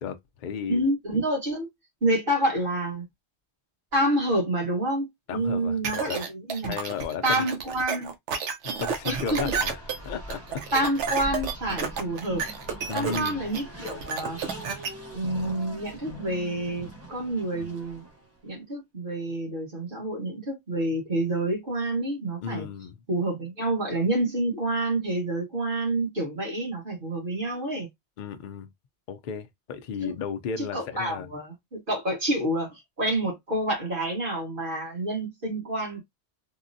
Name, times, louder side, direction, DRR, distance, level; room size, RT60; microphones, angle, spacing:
voice 1, 0.0-0.8 5.3-6.2 6.7-7.5 8.8-9.8 10.0-10.8 12.9-13.5 22.4-23.0 28.2-28.7 29.1-31.3, left 6 dB, 55° left, 0.6 m, -34 dB
voice 2, 0.7-1.7 2.0-3.1 3.9-6.8 7.2-8.1 9.0-9.4 10.7-12.5 12.9-14.4 15.1-18.0 18.4-22.7 23.1-27.9 30.0-30.1 30.6-36.0, right 1 dB, 50° right, 1.5 m, -28 dB
sound 1, 5.8-14.9, right 6 dB, 80° right, 1.0 m, -31 dB
Race car auto racing, 8.7-18.4, right 1 dB, 15° right, 0.9 m, -41 dB
3.6 x 2.1 x 2.6 m
omnidirectional pair, 1.2 m